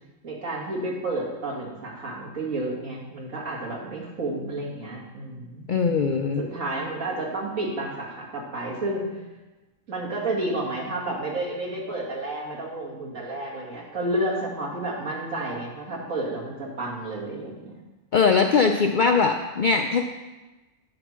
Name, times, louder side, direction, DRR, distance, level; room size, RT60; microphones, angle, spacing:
voice 1, 0.2-5.7 6.4-9.1 9.9-17.6, right 2 dB, 90° right, -4 dB, 2.4 m, -31 dB
voice 2, 5.7-6.4 18.1-20.0, left 5 dB, 70° left, 3 dB, 0.4 m, -21 dB
8.6 x 4.4 x 6.1 m, 1.1 s
omnidirectional pair, 1.3 m